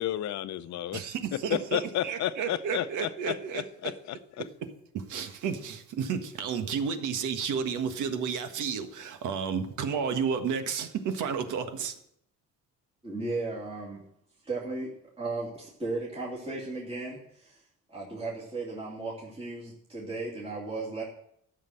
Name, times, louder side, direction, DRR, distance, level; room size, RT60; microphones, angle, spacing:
voice 1, 0.0-1.0 1.5-4.2, left 12 dB, 60° left, 0.7 m, -32 dB
voice 2, 0.9-3.7 4.9-11.9, right 6 dB, 75° right, 1.5 m, -32 dB
voice 3, 13.0-14.0 14.4-17.6 17.9-21.0, right 3 dB, 20° right, 2.7 m, -35 dB
14.0 x 6.6 x 7.6 m
cardioid pair, 145°, 31 cm